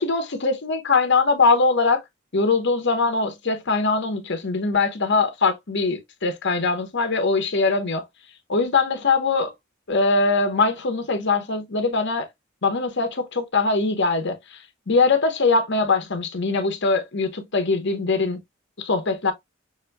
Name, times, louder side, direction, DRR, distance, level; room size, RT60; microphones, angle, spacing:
voice 1, 0.0-2.0 2.3-8.0 8.5-9.5 9.9-12.3 12.6-14.4 14.9-18.4 18.8-19.3, left 3 dB, 60° left, 1.0 m, -22 dB
6.2 x 2.6 x 2.2 m
head